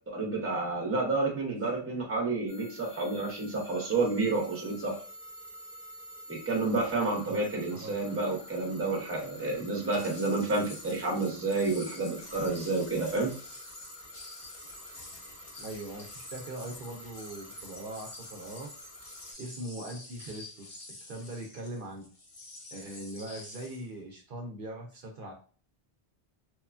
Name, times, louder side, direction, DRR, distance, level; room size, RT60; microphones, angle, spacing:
voice 1, 0.1-5.0 6.3-13.3, right 3 dB, 15° right, -1 dB, 0.7 m, -30 dB
sound 1, 2.5-19.3, left 1 dB, 85° left, 1.4 m, -49 dB
sound 2, 9.9-23.9, left 2 dB, 30° left, 0.6 m, -48 dB
voice 2, 15.6-18.7 19.4-22.1 22.7-25.3, right 1 dB, 65° right, 0 dB, 0.7 m, -41 dB
2.9 x 2.2 x 2.4 m, 0.40 s
omnidirectional pair, 1.0 m